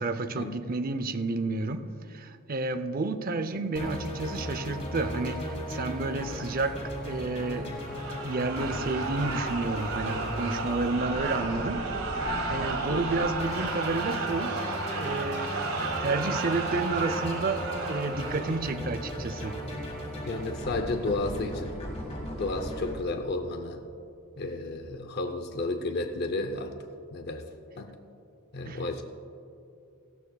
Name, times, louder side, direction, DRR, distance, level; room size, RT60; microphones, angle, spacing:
voice 1, 0.0-7.8 8.2-11.9 12.2-14.6 15.0-15.6 16.0-19.6 28.7-28.8, right 3 dB, 40° right, 10 dB, 0.5 m, -31 dB
sound 1, 3.7-22.9, equal, 30° left, 1.7 m, -37 dB
sound 2, 7.8-18.8, right 3 dB, 80° right, 2.0 m, -33 dB
voice 2, 20.2-21.7 22.4-23.8 24.4-26.7 27.1-28.0 28.5-29.0, left 2 dB, 50° left, 6 dB, 0.6 m, -32 dB
18.0 x 14.5 x 2.3 m, 2.7 s
head